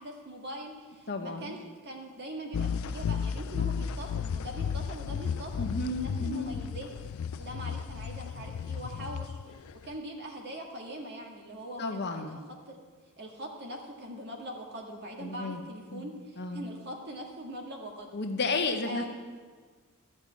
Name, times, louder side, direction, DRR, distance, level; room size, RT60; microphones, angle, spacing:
voice 1, 0.0-6.9 7.4-12.2 12.7-12.8 13.2-18.1 18.8-19.0, right 1 dB, 50° right, 1 dB, 1.8 m, -42 dB
voice 2, 1.1-1.6 5.6-6.5 11.8-12.4 15.2-15.6 15.9-16.6 18.1-19.0, left 3 dB, 50° left, 4 dB, 1.0 m, -33 dB
sound 1, 2.5-9.9, left 7 dB, 65° left, 0.3 m, -34 dB
13.5 x 5.5 x 8.5 m, 1.5 s
head